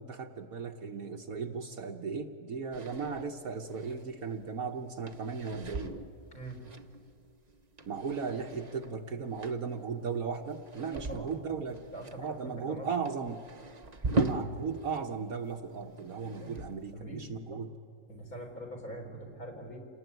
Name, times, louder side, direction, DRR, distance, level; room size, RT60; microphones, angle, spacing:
voice 1, 0.0-5.9 7.9-11.8 12.2-13.4 14.1-17.7, right 5 dB, 55° right, 5 dB, 1.4 m, -36 dB
sound 1, 2.7-15.0 15.3-16.9, right 2 dB, 30° right, 1.0 m, -40 dB
voice 2, 6.3-6.6 10.9-11.4 11.9-12.9 16.2-16.5 16.9-17.6 18.1-19.8, right 1 dB, 50° left, 3 dB, 4.4 m, -44 dB
28.0 x 19.0 x 9.2 m, 2.5 s
omnidirectional pair, 1.9 m